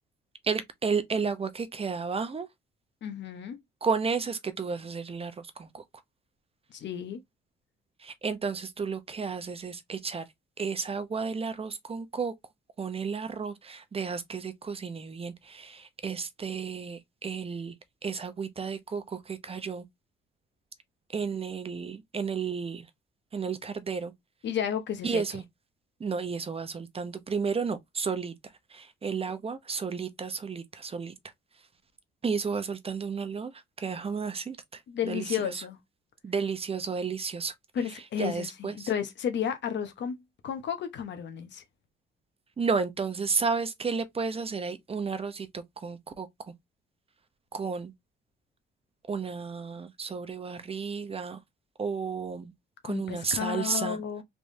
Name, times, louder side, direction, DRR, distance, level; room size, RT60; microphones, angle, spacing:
voice 1, 0.4-2.5 3.8-5.3 5.6-5.8 8.0-10.2 10.6-12.3 12.8-17.7 18.0-19.8 21.1-22.8 23.3-24.1 25.0-25.4 26.0-28.3 28.7-31.1 32.2-33.5 33.8-34.6 35.1-35.2 36.2-37.5 38.2-38.9 42.6-46.3 47.5-47.9 49.1-51.4 51.8-52.5 52.8-54.0, right 5 dB, 30° right, 0.6 m, -32 dB
voice 2, 3.0-3.6 6.7-7.2 24.4-25.2 34.9-35.8 37.7-41.6 52.8-54.2, left 8 dB, 65° left, 0.9 m, -32 dB
3.4 x 3.1 x 2.6 m
cardioid pair, 90°, 20 cm